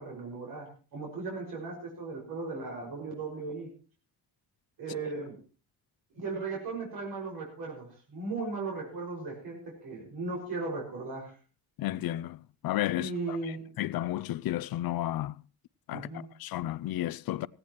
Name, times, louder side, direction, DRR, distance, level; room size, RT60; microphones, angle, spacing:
voice 1, 0.0-3.7 4.8-5.4 6.1-11.3 13.0-13.6 15.9-16.2, right 3 dB, 65° right, 6.0 m, -37 dB
voice 2, 11.8-12.4 12.6-15.3 15.9-17.5, left 14 dB, 60° left, 0.6 m, -33 dB
17.5 x 16.5 x 3.1 m
cardioid pair, 120°, 40 cm